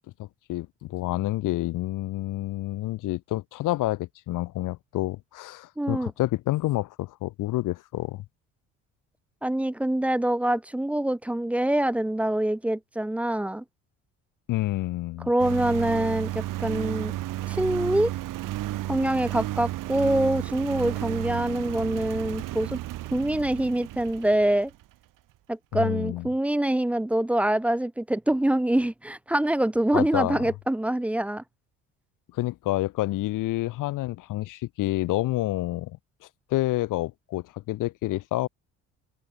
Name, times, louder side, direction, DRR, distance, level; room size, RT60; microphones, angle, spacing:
voice 1, 0.2-8.2 14.5-15.3 25.7-26.3 29.9-30.4 32.3-36.0 36.5-38.5, left 17 dB, 60° left, 1.0 m, -28 dB
voice 2, 5.8-6.1 9.4-13.6 15.3-17.1 17.5-18.1 18.9-22.8 23.1-24.7 25.5-31.4, right 1 dB, 5° right, 0.4 m, -25 dB
Engine, 15.4-24.8, right 16 dB, 60° right, 1.4 m, -33 dB
open air
hypercardioid pair, 65°, 36 cm